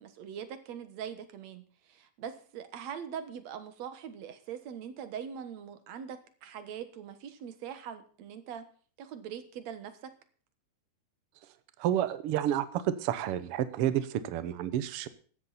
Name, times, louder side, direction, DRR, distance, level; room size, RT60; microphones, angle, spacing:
voice 1, 0.0-8.6 9.0-10.1, right 8 dB, 60° right, 10 dB, 2.3 m, -42 dB
voice 2, 11.8-15.1, right 11 dB, 90° right, 13 dB, 1.3 m, -30 dB
16.0 x 12.0 x 4.2 m, 0.43 s
omnidirectional pair, 4.0 m